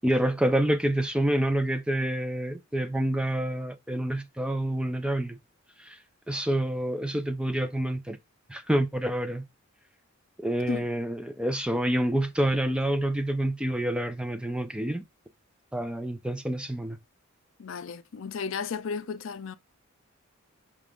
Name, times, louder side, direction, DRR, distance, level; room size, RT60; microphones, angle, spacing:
voice 1, 0.0-5.4 5.8-6.0 6.3-8.2 8.5-9.4 10.4-15.0 15.7-17.0, right 1 dB, 5° right, 0.3 m, -27 dB
voice 2, 17.6-19.6, left 5 dB, 65° left, 0.4 m, -34 dB
5.8 x 2.4 x 3.5 m
head